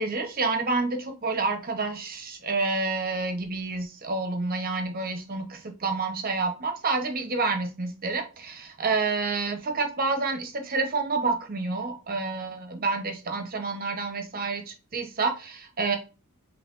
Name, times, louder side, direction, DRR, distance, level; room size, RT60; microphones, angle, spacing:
voice 1, 0.0-2.1 2.4-16.0, right 3 dB, 40° right, 5 dB, 0.9 m, -28 dB
5.6 x 3.3 x 2.5 m, 0.32 s
head